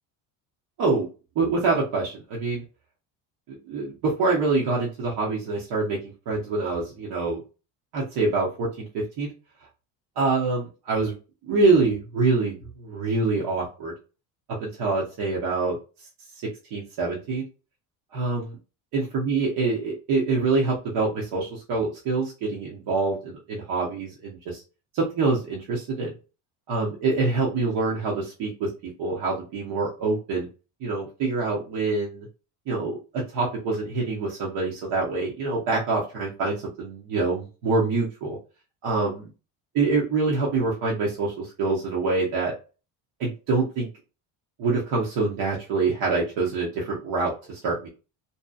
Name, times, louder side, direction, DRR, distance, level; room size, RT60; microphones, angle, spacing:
voice 1, 1.4-2.6 3.5-6.0 6.3-7.4 7.9-9.3 10.2-11.2 11.4-13.9 14.5-15.8 16.7-17.4 18.1-18.6 18.9-24.6 24.9-26.1 26.7-30.5 30.8-32.3 32.7-38.4 38.8-39.3 39.7-42.5 43.2-43.9 44.6-47.9, right 3 dB, 70° right, -3 dB, 1.0 m, -25 dB
2.7 x 2.3 x 2.3 m, 0.32 s
cardioid pair, 110°, 41 cm